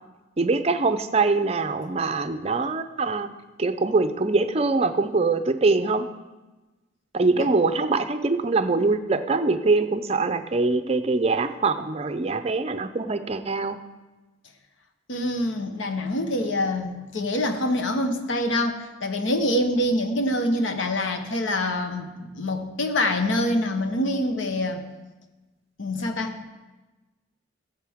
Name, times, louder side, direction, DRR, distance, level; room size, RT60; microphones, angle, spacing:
voice 1, 0.4-3.3 3.6-6.1 7.1-13.8, right 3 dB, 30° right, 10 dB, 0.5 m, -23 dB
voice 2, 15.1-24.8 25.8-26.4, left 1 dB, 75° left, 6 dB, 1.1 m, -25 dB
15.5 x 7.7 x 3.6 m, 1.2 s
head